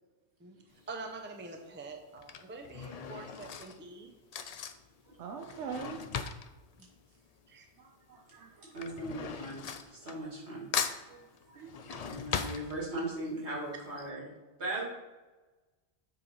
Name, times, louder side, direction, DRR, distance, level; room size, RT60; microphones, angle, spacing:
Drawer open or close / Cutlery silverware, 0.7-1.1 2.0-7.8 8.1-10.5 10.7-13.3 13.7-13.8 14.0-14.1, left 6 dB, 60° left, 0.4 m, -39 dB
voice 1, 0.9-4.1 6.8-6.9 7.5-7.7, right 3 dB, 15° right, 4 dB, 0.5 m, -45 dB
voice 2, 5.2-6.0 7.8-8.5 11.1-11.2 11.5-12.0, right 6 dB, 85° right, 4 dB, 1.0 m, -43 dB
voice 3, 8.6-10.7 12.0-14.3 14.6-14.8, right 1 dB, 70° right, -4 dB, 2.4 m, -38 dB
7.5 x 3.3 x 5.4 m, 1.2 s
omnidirectional pair, 1.2 m